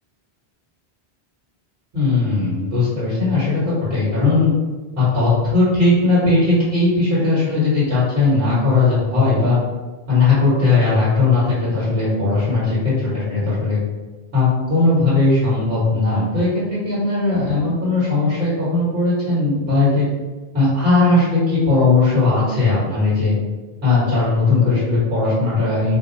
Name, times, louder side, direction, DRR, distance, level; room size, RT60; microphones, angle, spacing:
voice 1, 1.9-4.5 4.9-9.6 10.1-13.8 14.3-20.0 20.5-23.3 23.8-26.0, left 3 dB, 70° right, -11 dB, 1.6 m, -18 dB
2.8 x 2.4 x 4.0 m, 1.2 s
omnidirectional pair, 1.0 m